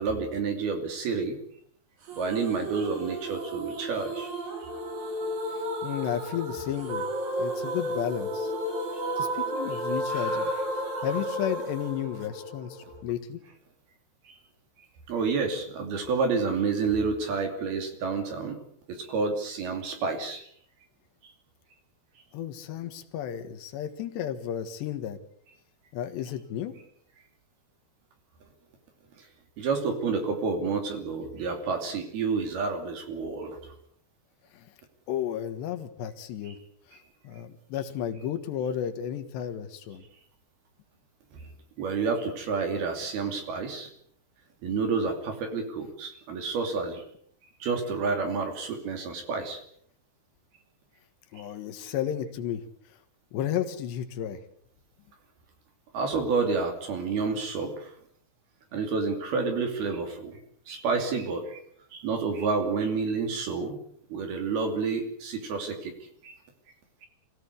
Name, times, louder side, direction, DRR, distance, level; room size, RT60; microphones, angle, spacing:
voice 1, 0.0-1.4 2.2-4.3 10.1-10.5 14.2-14.4 15.1-18.6 18.9-20.4 29.6-33.6 36.4-36.5 41.8-43.9 44.6-47.0 47.6-49.6 51.4-51.5 55.9-57.9 58.7-60.4 60.7-61.6 61.9-63.8 64.1-65.9 66.2-66.4, right 4 dB, 65° right, 4 dB, 4.6 m, -29 dB
sound 1, 2.1-13.0, right 1 dB, 50° right, 4.2 m, -33 dB
voice 2, 5.5-7.0 7.4-8.5 9.2-10.5 11.0-13.4 22.3-25.2 25.9-26.7 34.5-34.7 35.1-36.6 36.9-37.0 37.2-40.1 51.3-52.6 53.3-54.4, left 10 dB, 85° left, 7 dB, 3.7 m, -33 dB
25.0 x 17.5 x 8.3 m, 0.65 s
omnidirectional pair, 4.8 m